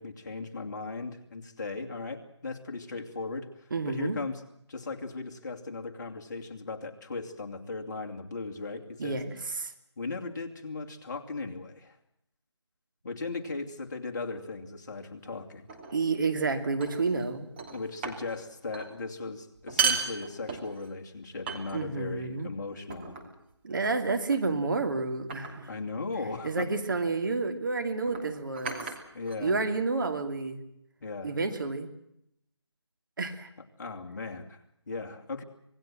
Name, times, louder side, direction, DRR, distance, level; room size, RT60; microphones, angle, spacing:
voice 1, 0.0-4.4 4.7-9.2 10.0-12.0 13.0-15.7 17.7-23.3 25.7-27.0 29.1-29.6 31.0-31.3 33.8-35.4, left 3 dB, 40° left, 3 dB, 2.7 m, -37 dB
voice 2, 3.7-4.2 9.0-9.7 15.9-17.5 21.7-22.5 23.6-25.7 26.4-28.8 29.4-30.6 31.2-31.9 33.2-33.5, right 3 dB, 45° right, 7 dB, 2.6 m, -30 dB
sound 1, 15.7-16.0 16.8-17.3 17.6-18.4 18.7-18.9 19.6-20.9 21.5-22.1 22.9-23.4 24.3-24.6 25.3-25.7 26.9-27.1 28.0-29.7, right 5 dB, 20° right, 2.9 m, -34 dB
26.5 x 19.0 x 7.6 m, 0.78 s
figure-of-eight pair, 165°, 15 cm